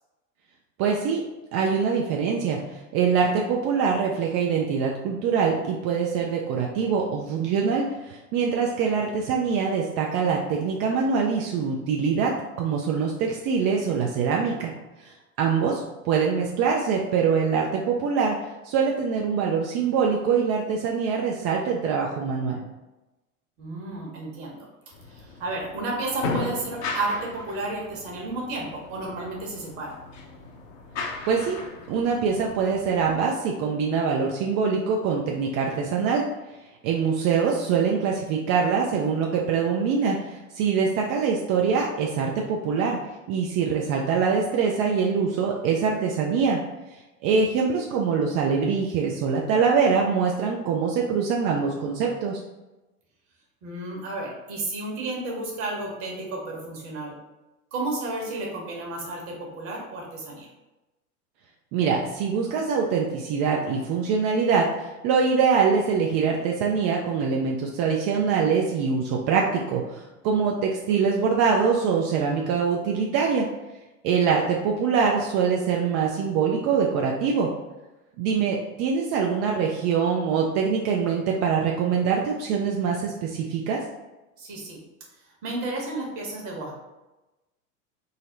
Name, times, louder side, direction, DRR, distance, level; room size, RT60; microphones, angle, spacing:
voice 1, 0.8-1.2 1.5-2.6 2.9-12.3 12.6-14.7 15.0-15.1 15.4-18.4 18.6-22.6 31.3-31.6 31.9-36.3 36.8-43.0 43.3-46.6 47.2-52.4 61.7-73.5 74.0-77.5 78.2-83.8, right 6 dB, 40° right, 0 dB, 0.4 m, -24 dB
voice 2, 23.6-24.7 25.1-30.0 53.6-57.1 57.7-60.5 84.4-84.8 85.4-86.7, right 2 dB, 55° right, -1 dB, 1.5 m, -32 dB
sound 1, 24.9-33.2, left 3 dB, 60° left, 0.9 m, -36 dB
4.0 x 2.0 x 3.9 m, 1.1 s
hypercardioid pair, 95°, 43 cm